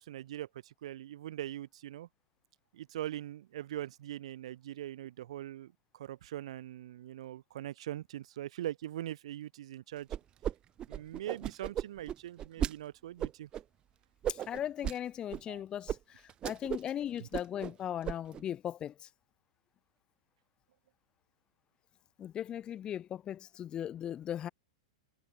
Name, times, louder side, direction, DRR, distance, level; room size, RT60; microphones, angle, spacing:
voice 1, 0.0-2.1 2.7-10.1 10.9-13.5 15.5-15.6 17.2-17.3, right 13 dB, 70° right, 2.6 m, -42 dB
sound 1, 10.1-10.5 10.8-12.7 13.2-13.6 14.2-15.0 15.3-15.4 15.9-16.0 16.3-16.9 17.2-17.7 18.0-18.4, right 10 dB, 25° right, 5.0 m, -35 dB
voice 2, 14.3-19.1 22.2-24.5, left 10 dB, 25° left, 5.4 m, -38 dB
hypercardioid pair, 130°, 3 cm